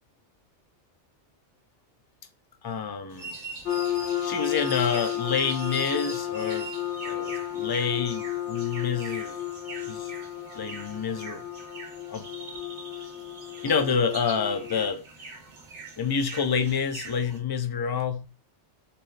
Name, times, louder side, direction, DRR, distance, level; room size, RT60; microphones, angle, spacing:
voice 1, 2.6-3.3 4.2-6.7 7.0-9.3 9.9-10.1 10.5-11.4 12.1-12.3 13.6-15.0 16.0-18.3, left 6 dB, 40° left, 0.3 m, -28 dB
sound 1, 3.1-17.4, right 3 dB, 80° right, 1.7 m, -43 dB
sound 2, 3.6-14.9, left 11 dB, 80° left, 1.2 m, -33 dB
4.3 x 3.4 x 3.2 m
omnidirectional pair, 1.2 m